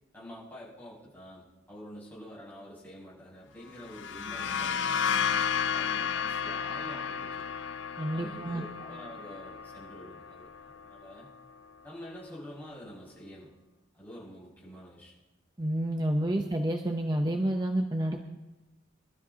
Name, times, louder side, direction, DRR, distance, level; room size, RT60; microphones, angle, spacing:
voice 1, 0.1-7.5 8.1-11.3 11.8-13.5 13.9-15.1, equal, 10° left, -8 dB, 5.9 m, -47 dB
sound 1, 3.8-11.4, left 7 dB, 70° left, 0.5 m, -33 dB
voice 2, 8.0-8.6 15.6-18.4, right 1 dB, 20° right, 3 dB, 0.7 m, -29 dB
25.0 x 12.5 x 2.8 m, 1.1 s
head